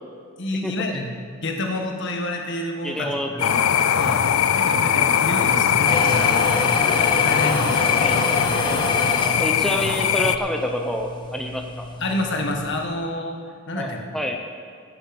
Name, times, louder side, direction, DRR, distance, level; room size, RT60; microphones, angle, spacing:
voice 1, 0.4-1.1 1.4-8.1 12.0-13.4 13.7-14.0, left 1 dB, 55° left, 2 dB, 1.5 m, -29 dB
voice 2, 2.8-3.5 8.0-8.2 9.2-11.9 13.8-14.4, equal, ahead, 2 dB, 0.7 m, -28 dB
sound 1, 3.4-10.4, left 8 dB, 75° left, 0.5 m, -20 dB
sound 2, 5.8-12.9, left 2 dB, 20° left, 1.2 m, -28 dB
15.5 x 8.7 x 5.3 m, 2.1 s
head